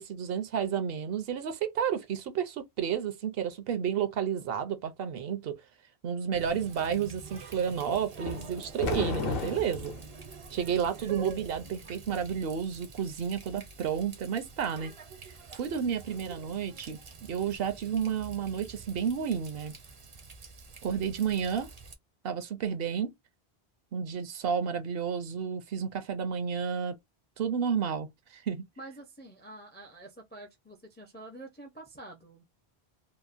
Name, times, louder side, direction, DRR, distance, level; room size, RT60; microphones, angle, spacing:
voice 1, 0.0-5.6 6.0-9.9 10.5-14.9 15.5-17.0 17.3-19.7 20.8-21.7 22.2-23.1 23.9-27.0 27.4-28.7, right 7 dB, 70° right, 0.8 m, -31 dB
Water tap faucet, 6.3-21.9, right 4 dB, 40° right, 0.5 m, -47 dB
sound 1, 8.2-10.0, left 4 dB, 65° left, 0.8 m, -34 dB
voice 2, 28.8-32.4, right 2 dB, 15° left, 0.3 m, -48 dB
2.8 x 2.0 x 2.4 m
omnidirectional pair, 1.1 m